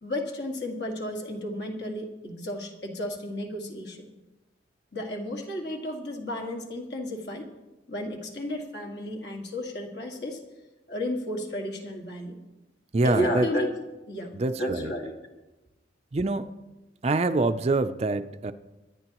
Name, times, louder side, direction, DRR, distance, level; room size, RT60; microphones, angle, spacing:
voice 1, 0.0-4.1 4.9-7.5 7.9-10.4 10.9-12.4 13.0-13.7 14.1-15.2, left 1 dB, 60° left, 2 dB, 2.0 m, -32 dB
voice 2, 12.9-13.5 14.3-14.9 16.1-16.5 17.0-18.5, right 3 dB, 35° right, 10 dB, 0.4 m, -25 dB
24.0 x 10.5 x 3.0 m, 1.1 s
head